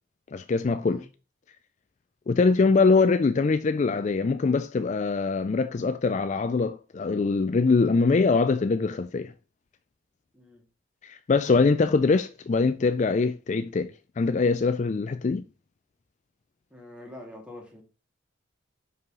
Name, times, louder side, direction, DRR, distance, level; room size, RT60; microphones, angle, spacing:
voice 1, 0.3-1.1 2.3-9.3 11.0-15.5, left 4 dB, 35° left, 0.3 m, -23 dB
voice 2, 16.7-17.8, left 1 dB, 5° right, 2.1 m, -45 dB
5.5 x 5.4 x 6.1 m
head